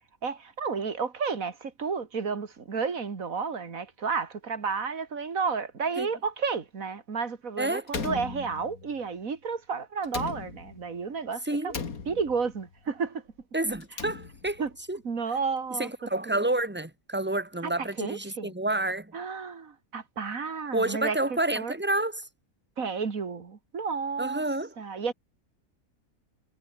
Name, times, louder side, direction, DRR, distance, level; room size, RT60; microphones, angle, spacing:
voice 1, 0.2-11.7 12.1-13.2 14.6-14.7 15.0-15.9 16.3-16.4 17.6-18.5 19.1-21.2 21.6-21.7 22.8-24.4 24.8-25.1, right 5 dB, 70° right, 2.5 m, -32 dB
Slam, 7.9-9.0 10.0-11.0 11.7-12.6 13.7-14.7, left 5 dB, 85° left, 2.5 m, -37 dB
voice 2, 11.4-11.8 13.5-14.6 14.9-15.0 15.8-19.1 20.7-22.3 24.2-24.7, right 2 dB, 5° right, 2.1 m, -29 dB
omnidirectional pair, 1.5 m